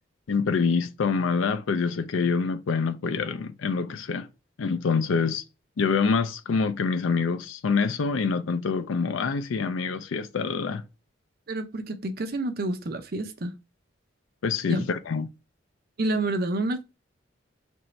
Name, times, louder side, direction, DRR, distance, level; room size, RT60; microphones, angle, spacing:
voice 1, 0.3-4.3 4.6-5.4 5.8-10.8 14.4-15.3, left 5 dB, 85° left, 0.4 m, -26 dB
voice 2, 11.5-13.5 14.7-14.8 16.0-16.8, right 2 dB, 50° right, 0.6 m, -28 dB
3.0 x 2.6 x 4.3 m
head